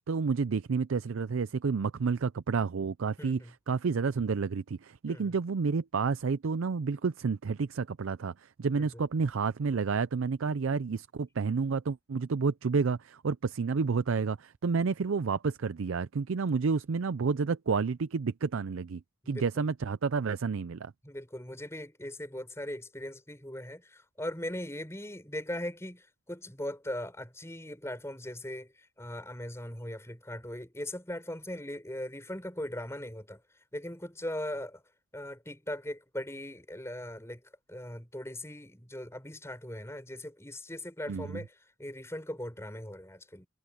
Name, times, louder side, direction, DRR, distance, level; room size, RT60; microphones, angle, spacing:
voice 1, 0.1-20.9 41.1-41.4, right 5 dB, 75° right, 0.5 m, -30 dB
voice 2, 3.2-3.5 5.1-5.3 8.7-8.9 19.2-19.5 21.0-33.4 33.7-34.8 35.1-37.4 37.7-43.5, left 1 dB, 15° left, 6.0 m, -39 dB
head